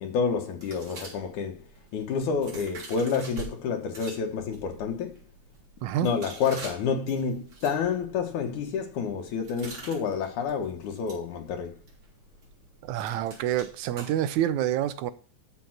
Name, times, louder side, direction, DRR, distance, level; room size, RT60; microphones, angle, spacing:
voice 1, 0.0-1.7 1.9-5.2 6.0-11.8, left 6 dB, 75° left, 2.5 m, -29 dB
sound 1, 0.6-3.5 3.9-14.4, right 3 dB, 50° right, 4.6 m, -46 dB
voice 2, 12.8-15.1, right 12 dB, 75° right, 1.9 m, -27 dB
13.0 x 5.4 x 5.9 m
omnidirectional pair, 3.6 m